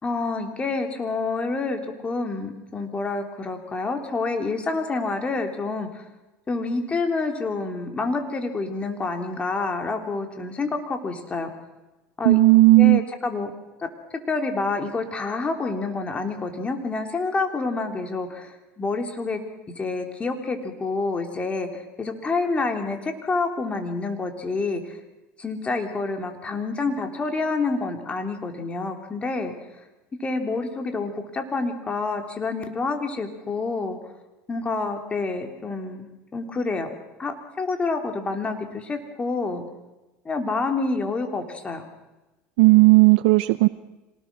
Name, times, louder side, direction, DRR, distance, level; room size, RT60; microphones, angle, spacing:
voice 1, 0.0-6.0 6.5-11.5 12.2-12.4 12.8-13.5 14.3-19.4 19.8-25.0 25.4-29.5 30.2-34.0 34.5-36.1 36.3-36.9 37.2-39.6 40.3-41.8, left 3 dB, 20° left, 5 dB, 3.6 m, -28 dB
voice 2, 12.2-13.0 42.6-43.7, right 21 dB, 80° right, 11 dB, 0.7 m, -14 dB
26.0 x 19.5 x 6.3 m, 1.1 s
supercardioid pair, 110°, 5 cm